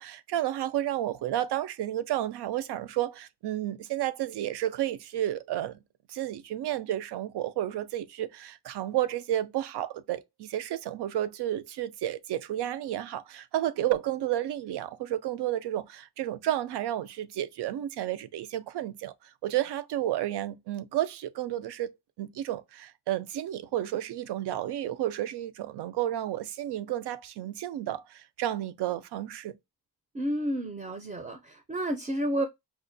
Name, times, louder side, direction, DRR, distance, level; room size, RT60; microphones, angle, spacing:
voice 1, 0.0-5.8 6.1-19.1 19.4-21.9 22.2-29.5, right 12 dB, 80° right, 0.5 m, -31 dB
voice 2, 30.1-32.5, right 1 dB, 20° right, 0.4 m, -31 dB
4.9 x 2.1 x 2.5 m
cardioid pair, 95°, 39 cm